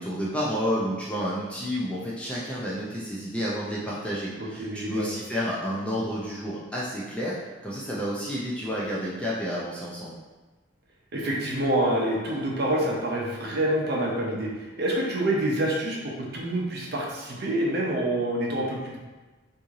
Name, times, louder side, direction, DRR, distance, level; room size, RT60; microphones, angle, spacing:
voice 1, 0.0-7.4 7.6-10.2, equal, 5° left, -7 dB, 0.5 m, -30 dB
voice 2, 4.4-5.1 11.1-19.0, right 1 dB, 50° right, -3 dB, 0.7 m, -27 dB
3.1 x 2.7 x 3.6 m, 1.2 s
head